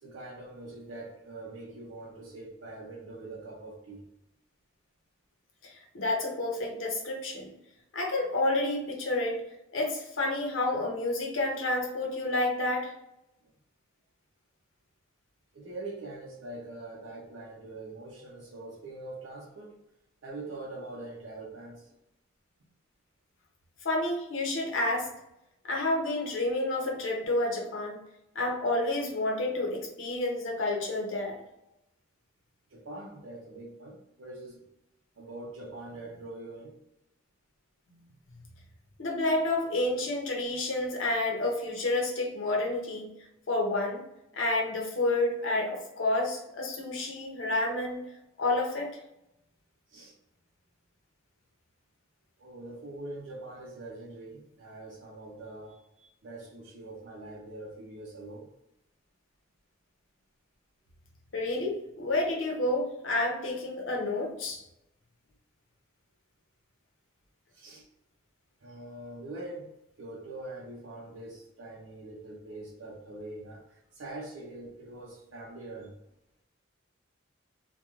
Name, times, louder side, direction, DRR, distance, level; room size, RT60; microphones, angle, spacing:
voice 1, 0.0-4.1 13.4-13.5 15.5-19.8 20.2-21.9 32.7-34.6 35.2-36.7 49.9-50.1 52.4-58.5 67.5-67.9 68.6-69.7 70.0-76.0, right 2 dB, 70° right, -3 dB, 0.5 m, -43 dB
voice 2, 5.6-7.5 7.9-9.4 9.7-12.9 23.8-25.1 25.6-28.0 28.3-31.4 38.3-38.4 39.0-43.1 43.5-44.0 44.3-48.0 48.4-48.9 61.3-64.6, left 2 dB, 80° left, -1 dB, 0.8 m, -29 dB
2.4 x 2.2 x 2.9 m, 0.85 s
head